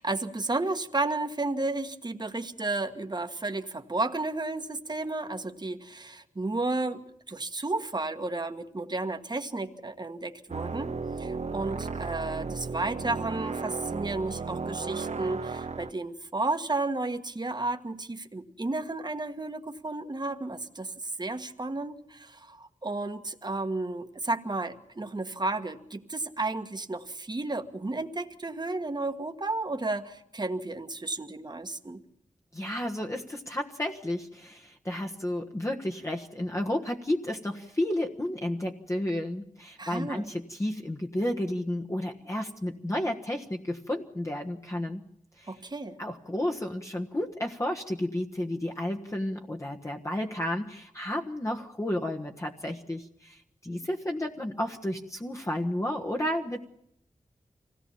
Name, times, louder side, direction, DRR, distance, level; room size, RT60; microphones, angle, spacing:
voice 1, 0.0-7.0 7.3-10.9 11.2-32.0 39.8-40.2 45.5-46.0, right 2 dB, 35° right, 7 dB, 1.5 m, -32 dB
sound 1, 10.5-15.9, right 4 dB, 60° right, 1.1 m, -34 dB
voice 2, 32.5-45.0 45.4-45.6 46.0-56.6, left 1 dB, 25° left, 0 dB, 1.4 m, -32 dB
24.5 x 17.0 x 7.1 m, 0.75 s
wide cardioid pair, 65°, 13 cm